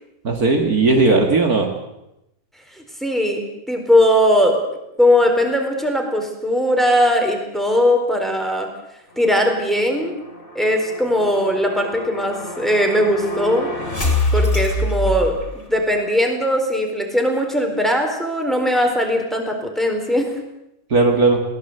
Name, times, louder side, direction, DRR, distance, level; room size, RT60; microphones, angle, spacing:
voice 1, 0.2-1.7 20.9-21.4, right 3 dB, 55° right, 3 dB, 2.5 m, -16 dB
voice 2, 3.0-4.6 5.0-8.7 9.2-10.1 10.5-13.7 14.3-20.3, equal, ahead, 3 dB, 4.2 m, -19 dB
sound 1, 9.1-15.9, left 2 dB, 30° left, 4.4 m, -26 dB
22.0 x 18.0 x 8.0 m, 0.86 s
omnidirectional pair, 1.9 m